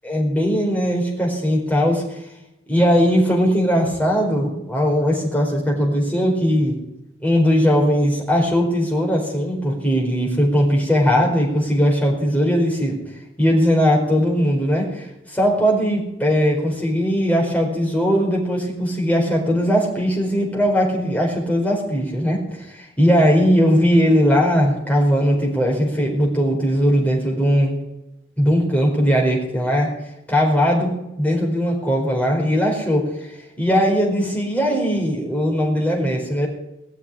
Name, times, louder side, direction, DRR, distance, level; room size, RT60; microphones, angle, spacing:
voice 1, 0.0-2.2 2.7-6.8 7.2-13.0 13.4-22.7 23.0-27.8 28.4-29.9 30.3-36.5, equal, 10° left, -2 dB, 4.8 m, -19 dB
20.0 x 7.2 x 9.9 m, 0.88 s
head